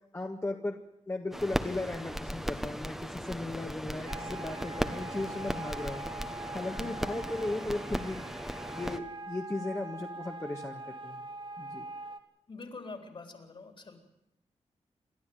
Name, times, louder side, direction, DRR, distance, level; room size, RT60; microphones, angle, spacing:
voice 1, 0.1-0.8 1.1-6.0 6.5-8.2 8.7-11.2 11.6-11.8, left 2 dB, 25° left, 1 dB, 1.6 m, -36 dB
sound 1, 1.3-9.0, equal, 5° right, 1.2 m, -37 dB
sound 2, 4.1-12.2, right 2 dB, 45° right, 1.8 m, -43 dB
voice 2, 6.7-7.0 12.5-14.0, left 3 dB, 50° left, 5 dB, 3.9 m, -45 dB
28.0 x 12.5 x 9.5 m, 0.85 s
wide cardioid pair, 110°, 12 cm